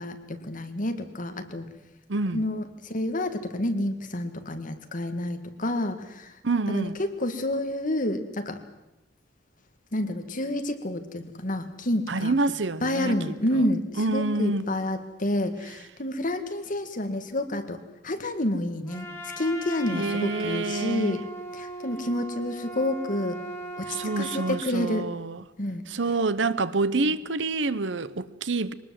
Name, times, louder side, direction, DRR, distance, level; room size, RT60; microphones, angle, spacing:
voice 1, 0.0-1.7 2.3-6.3 6.7-8.6 9.9-12.3 12.8-17.8 18.0-19.1 19.4-21.2 21.5-23.4 23.8-23.9 24.2-25.1 25.6-25.8 27.0-27.2, left 1 dB, 45° left, 2.0 m, -29 dB
voice 2, 2.1-2.4 6.4-7.0 12.1-13.3 14.0-14.7 19.9-21.2 23.9-25.4 25.9-28.7, right 3 dB, 70° right, 0.9 m, -27 dB
Trumpet, 18.9-24.6, right 1 dB, 15° left, 3.2 m, -38 dB
23.0 x 19.5 x 7.7 m
head